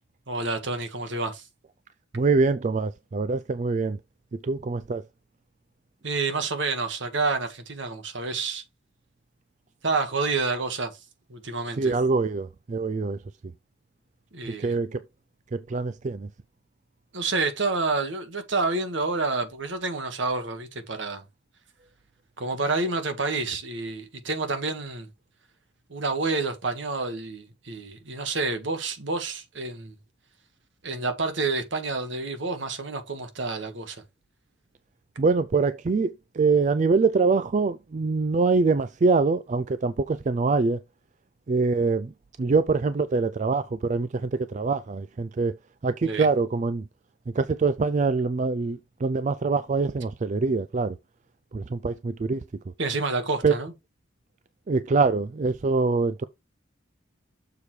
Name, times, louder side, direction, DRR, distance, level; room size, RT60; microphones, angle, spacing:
voice 1, 0.3-1.5 6.0-8.6 9.8-11.0 11.3-11.9 14.3-14.8 17.1-21.2 22.4-25.1 25.9-30.0 30.8-34.0 46.0-46.3 52.8-53.7, right 3 dB, 65° right, 1.6 m, -29 dB
voice 2, 2.1-4.0 4.4-5.0 11.8-13.2 14.5-15.0 15.5-16.3 35.2-40.8 41.5-42.1 42.4-45.5 45.8-46.8 47.4-51.0 51.5-52.4 53.4-53.5 54.7-56.2, right 4 dB, 35° right, 0.4 m, -24 dB
6.8 x 4.4 x 4.8 m
head